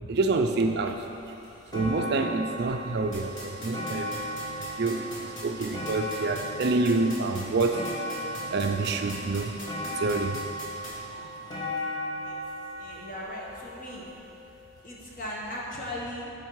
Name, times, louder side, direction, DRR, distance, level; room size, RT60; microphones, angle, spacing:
voice 1, 0.1-1.0 1.7-4.2 4.6-7.9 8.5-9.5 10.0-10.5 11.1-11.3, right 3 dB, 50° right, 5 dB, 0.4 m, -27 dB
sound 1, 1.0-1.1 1.4-14.6 15.4-15.5, equal, 20° left, 1.3 m, -37 dB
sound 2, 3.1-10.9, left 1 dB, 55° left, 2.0 m, -40 dB
voice 2, 12.7-14.1 14.8-16.3, left 1 dB, 40° left, -4 dB, 1.3 m, -38 dB
9.1 x 5.3 x 4.7 m, 2.8 s
head